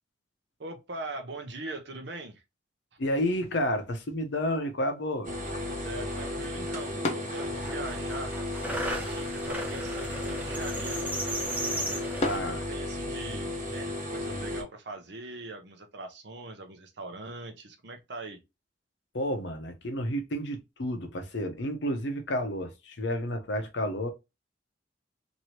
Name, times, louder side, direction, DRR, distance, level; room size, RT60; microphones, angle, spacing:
voice 1, 0.6-2.4 5.6-11.1 12.3-18.4, right 2 dB, 65° right, 0.7 m, -41 dB
voice 2, 3.0-5.3 11.7-12.6 19.1-24.1, equal, 70° left, 0.7 m, -31 dB
sound 1, 3.3-13.3, left 2 dB, 35° left, 0.7 m, -41 dB
sound 2, 5.2-14.6, left 1 dB, 45° right, 1.2 m, -34 dB
sound 3, 5.8-5.9 6.1-6.9 7.2-12.4, right 1 dB, 10° right, 0.7 m, -36 dB
3.0 x 2.7 x 2.8 m
head